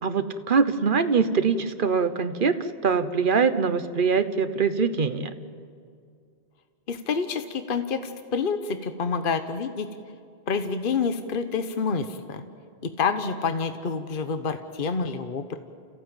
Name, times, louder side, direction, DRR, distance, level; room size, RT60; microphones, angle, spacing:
voice 1, 0.0-2.6 2.8-5.3, right 5 dB, 55° right, 11 dB, 1.2 m, -23 dB
voice 2, 6.9-9.9 10.5-12.4 12.8-15.6, left 5 dB, 55° left, 8 dB, 1.2 m, -28 dB
29.0 x 15.5 x 9.0 m, 2.3 s
omnidirectional pair, 1.1 m